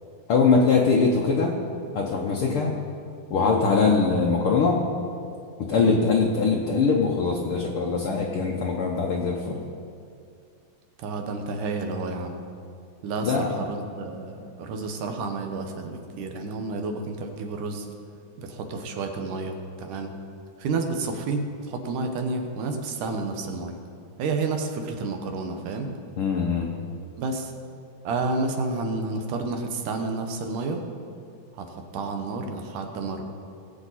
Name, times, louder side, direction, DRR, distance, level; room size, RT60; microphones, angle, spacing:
voice 1, 0.3-1.6 1.9-2.7 3.3-4.8 5.7-9.6 13.2-13.5 26.2-26.7, left 4 dB, 75° left, -1 dB, 1.2 m, -22 dB
voice 2, 5.7-6.0 11.0-12.4 13.0-17.9 18.4-20.1 20.6-23.8 24.2-25.9 27.2-27.5 28.0-30.8 31.5-33.2, right 3 dB, 80° right, 4 dB, 2.6 m, -30 dB
20.0 x 8.0 x 4.1 m, 2.4 s
omnidirectional pair, 3.7 m